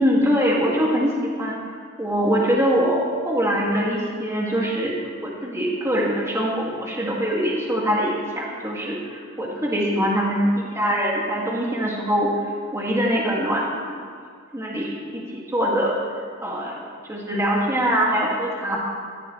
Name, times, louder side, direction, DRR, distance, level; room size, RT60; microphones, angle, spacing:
voice 1, 0.0-1.6 2.0-4.9 5.2-12.3 12.7-14.0 14.5-16.0 16.4-16.7 17.1-18.8, equal, 15° right, -4 dB, 2.4 m, -23 dB
20.0 x 15.0 x 3.4 m, 2.1 s
head